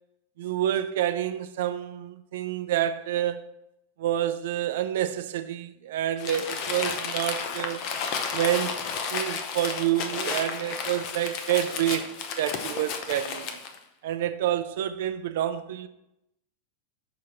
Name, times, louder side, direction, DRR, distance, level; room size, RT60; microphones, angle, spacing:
voice 1, 0.4-3.5 4.0-7.8 8.3-8.8 9.1-13.6 14.0-15.9, right 11 dB, 60° right, 0.4 m, -28 dB
Crumpling crinkling, 6.2-13.8, left 6 dB, 35° left, 0.7 m, -32 dB
6.1 x 4.8 x 5.6 m
supercardioid pair, 175°, 0 cm